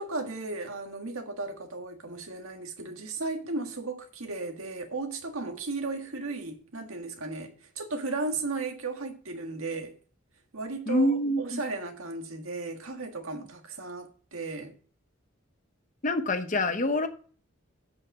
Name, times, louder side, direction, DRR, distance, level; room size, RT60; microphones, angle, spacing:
voice 1, 0.0-9.9 10.5-14.8, right 3 dB, 90° right, 1.7 m, -35 dB
voice 2, 10.9-11.6 16.0-17.1, left 1 dB, 35° left, 0.9 m, -26 dB
7.9 x 6.5 x 6.1 m
head